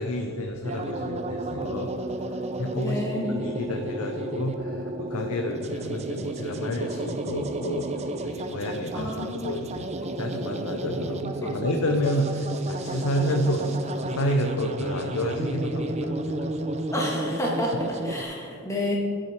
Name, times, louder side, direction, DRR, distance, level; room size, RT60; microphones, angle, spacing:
voice 1, 0.0-2.0 2.6-3.0 3.3-7.9 8.2-16.3, left 1 dB, 80° left, 4 dB, 0.7 m, -29 dB
sound 1, 0.6-18.2, right 2 dB, 30° right, 0.5 m, -32 dB
voice 2, 2.8-3.4 8.9-9.8 11.4-11.5 16.9-19.0, left 1 dB, 15° left, -3 dB, 1.7 m, -30 dB
13.5 x 6.3 x 4.5 m, 2.4 s
head